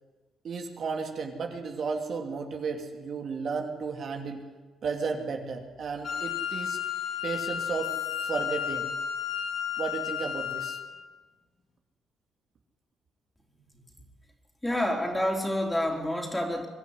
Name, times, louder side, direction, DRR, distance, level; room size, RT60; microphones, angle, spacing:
voice 1, 0.4-4.4 4.8-6.8 7.2-7.9 8.2-8.9 9.8-10.8, right 5 dB, 55° right, 3 dB, 2.7 m, -33 dB
Wind instrument woodwind instrument, 6.0-10.9, left 9 dB, 50° left, 3.0 m, -32 dB
voice 2, 14.6-16.7, left 1 dB, 10° left, 2 dB, 4.2 m, -28 dB
23.5 x 12.5 x 9.9 m, 1.3 s
cardioid pair, 90°, 0 cm